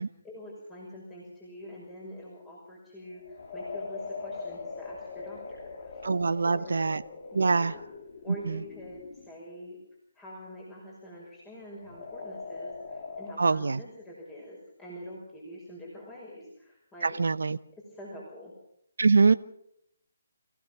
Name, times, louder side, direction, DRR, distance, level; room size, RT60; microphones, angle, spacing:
voice 1, 0.0-6.1 6.4-6.9 7.3-7.8 8.2-9.8 10.1-17.2 17.8-18.5, equal, 15° left, -4 dB, 5.9 m, -45 dB
sound 1, 3.1-9.3 11.7-13.3, left 4 dB, 50° left, 2.8 m, -41 dB
voice 2, 6.0-7.0 7.3-7.7 8.5-8.6 13.4-13.8 17.0-17.6 19.0-19.3, right 4 dB, 70° right, 14 dB, 0.8 m, -23 dB
26.5 x 16.5 x 6.0 m, 0.74 s
figure-of-eight pair, 150°, 0 cm